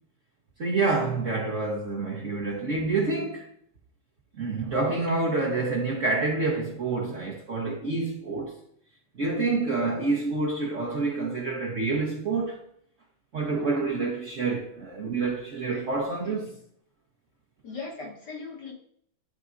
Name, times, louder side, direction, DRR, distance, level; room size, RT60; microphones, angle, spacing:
voice 1, 0.6-3.5 4.4-8.6 9.2-12.6 13.3-16.5, right 3 dB, 55° right, 0.8 m, -27 dB
voice 2, 17.6-18.7, left 4 dB, 60° left, 1.8 m, -40 dB
10.0 x 4.1 x 2.5 m
omnidirectional pair, 2.3 m